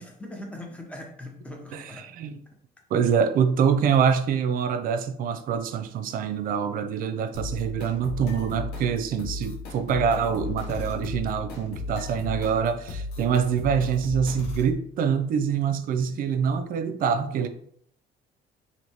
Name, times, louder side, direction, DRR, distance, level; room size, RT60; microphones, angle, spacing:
voice 1, 0.0-2.1 16.0-16.4, left 1 dB, 5° left, 0.7 m, -41 dB
voice 2, 2.9-17.5, right 7 dB, 55° right, 0.4 m, -25 dB
sound 1, 7.3-14.7, left 3 dB, 75° left, 0.9 m, -35 dB
3.2 x 2.6 x 2.8 m
cardioid pair, 110°, 17 cm